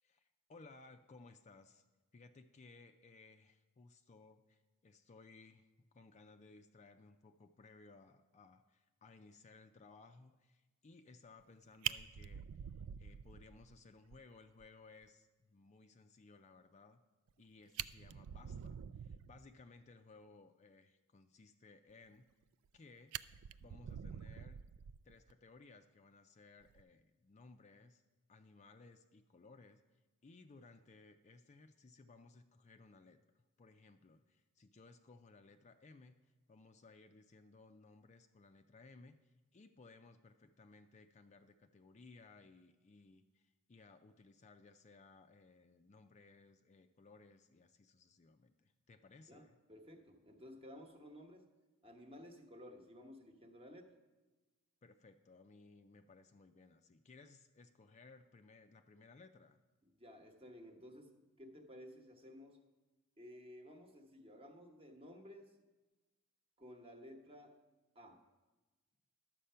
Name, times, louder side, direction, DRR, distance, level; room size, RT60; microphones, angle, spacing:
voice 1, 0.0-1.8 2.1-12.5 13.0-17.0 17.4-22.2 22.7-23.1 23.6-24.6 25.0-28.0 28.3-29.8 30.2-33.2 33.6-49.6 54.8-59.6, left 3 dB, 30° left, 7 dB, 0.4 m, -61 dB
Fire, 11.4-11.5 11.8-13.8 14.1-14.2 14.6-14.7 15.0-15.1 17.3-17.4 17.7-19.4 22.2-22.8 23.1-25.3 26.6-26.8, right 10 dB, 70° right, 0.3 m, -45 dB
voice 2, 49.3-51.5 51.8-53.9 59.8-62.6 63.2-65.5 66.6-67.6 67.9-68.2, equal, 25° right, 4 dB, 1.1 m, -55 dB
11.5 x 7.5 x 5.6 m, 1.2 s
head